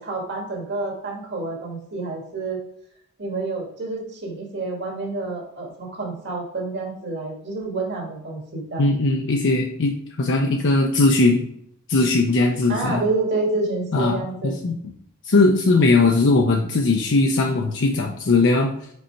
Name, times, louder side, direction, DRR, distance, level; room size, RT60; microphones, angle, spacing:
voice 1, 0.0-2.6 3.2-8.9 12.7-14.5, right 3 dB, 55° right, 0 dB, 1.6 m, -28 dB
voice 2, 8.8-11.5 11.9-13.0 13.9-14.8 15.3-18.7, left 3 dB, 55° left, 2 dB, 0.6 m, -19 dB
5.2 x 4.2 x 4.5 m, 0.70 s
head